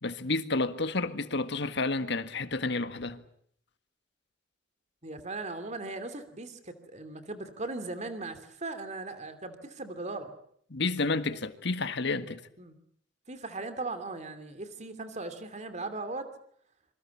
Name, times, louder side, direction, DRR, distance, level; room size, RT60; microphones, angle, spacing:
voice 1, 0.0-3.2 10.7-12.4, left 3 dB, 65° left, 1.7 m, -30 dB
voice 2, 5.0-10.3 12.6-12.8 13.3-16.3, right 3 dB, 40° right, 2.8 m, -38 dB
26.5 x 24.5 x 7.2 m
head